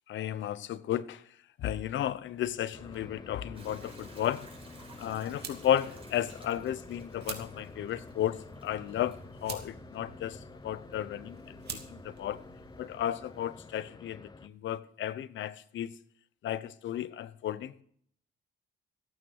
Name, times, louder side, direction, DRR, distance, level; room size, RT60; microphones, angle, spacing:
voice 1, 0.1-1.2 1.6-4.5 5.0-12.4 12.8-15.9 16.4-17.7, left 11 dB, 70° left, 0.8 m, -34 dB
sound 1, 2.7-14.5, left 3 dB, 20° left, 0.9 m, -49 dB
sound 2, 2.8-13.1, right 7 dB, 55° right, 2.6 m, -49 dB
Hiss / Toilet flush / Trickle dribble, 3.5-13.8, right 3 dB, 25° right, 4.8 m, -59 dB
14.5 x 8.9 x 6.4 m
cardioid pair, 90°, 20 cm